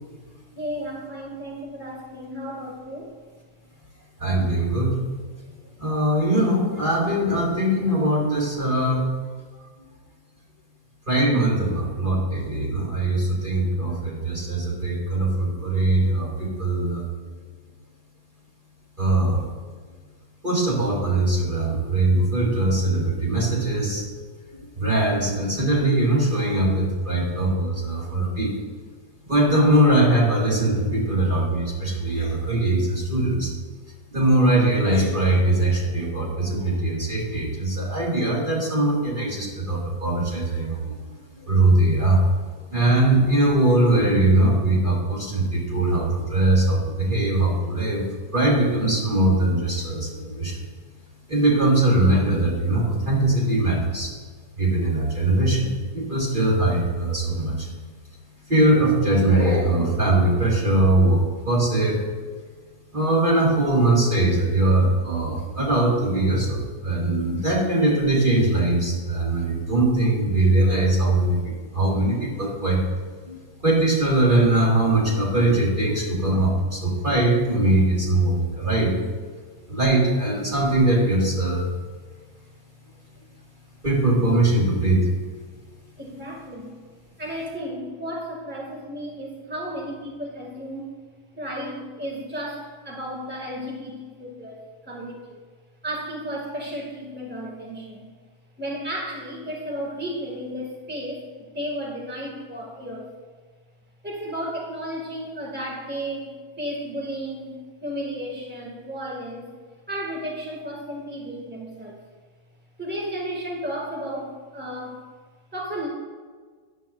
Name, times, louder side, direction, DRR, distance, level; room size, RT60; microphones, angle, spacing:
voice 1, 0.6-3.1 86.0-86.8 87.2-90.9 91.3-95.4 95.8-98.1 98.6-103.1 104.0-106.3 106.6-109.5 109.9-111.9 112.8-115.0 115.5-115.9, equal, 5° right, -2 dB, 1.8 m, -33 dB
voice 2, 4.2-5.0 5.8-9.1 11.1-17.1 19.0-19.5 20.4-24.0 24.8-28.5 29.2-33.5 34.1-41.0 41.3-42.3 42.7-48.1 48.3-50.6 51.3-54.1 54.6-57.7 58.5-62.0 62.9-72.8 73.3-73.4 73.6-79.0 79.7-81.7 83.8-85.1, right 1 dB, 30° right, -5 dB, 1.9 m, -21 dB
14.5 x 10.0 x 2.4 m, 1.5 s
omnidirectional pair, 1.7 m